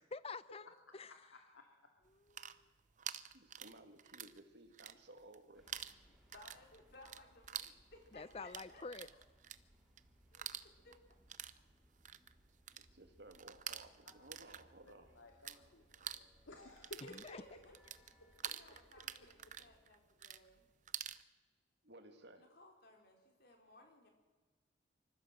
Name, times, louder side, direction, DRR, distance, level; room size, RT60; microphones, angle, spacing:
voice 1, 0.0-1.1 2.1-2.7 8.1-9.1 17.1-17.4, left 4 dB, 30° left, 17 dB, 0.6 m, -48 dB
voice 2, 1.3-1.6 15.1-17.6 18.2-18.3, left 1 dB, 85° left, 2 dB, 2.4 m, -56 dB
sound 1, 2.1-4.4 4.7-5.4 5.7-15.6 15.9-21.2, right 10 dB, 40° right, 0.7 m, -48 dB
voice 3, 3.3-5.6 12.9-15.1 21.8-22.5, right 2 dB, 60° right, 6 dB, 2.3 m, -58 dB
sound 2, 5.5-19.8, equal, ahead, 4.5 m, -69 dB
voice 4, 6.1-9.1 10.3-10.9 17.0-17.8 18.1-18.2 18.5-20.7 22.4-24.1, left 2 dB, 55° left, 2 dB, 4.7 m, -61 dB
25.0 x 14.5 x 7.7 m, 1.4 s
head